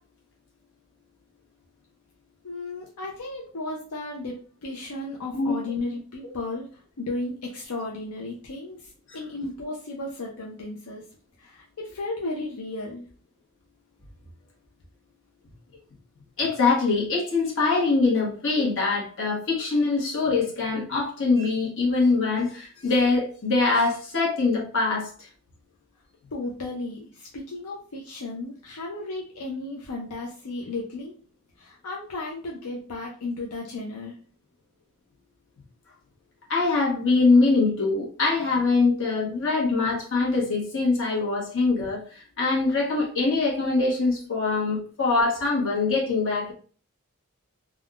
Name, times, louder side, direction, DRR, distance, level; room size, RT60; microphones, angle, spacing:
voice 1, 2.4-6.7 7.0-11.0 11.4-13.1 26.3-31.1 31.6-34.1, left 2 dB, 85° left, -2 dB, 0.6 m, -34 dB
voice 2, 16.4-25.1 36.5-46.5, left 3 dB, 60° left, -3 dB, 1.1 m, -23 dB
3.5 x 2.3 x 2.4 m, 0.41 s
head